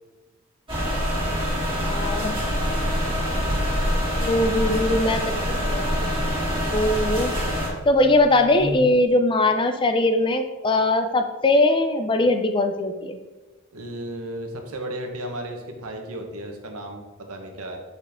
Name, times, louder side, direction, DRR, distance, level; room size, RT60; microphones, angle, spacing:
sound 1, 0.7-7.7, equal, 25° right, 2.1 m, -25 dB
voice 1, 1.8-2.4 4.2-5.9 6.5-7.3 7.9-13.2, left 2 dB, 20° left, 7 dB, 0.4 m, -21 dB
Buzz, 8.8-9.1, equal, 75° left, 1.4 m, -41 dB
voice 2, 13.7-17.8, right 1 dB, 75° right, 3 dB, 1.2 m, -34 dB
7.2 x 5.5 x 3.6 m, 1.2 s
head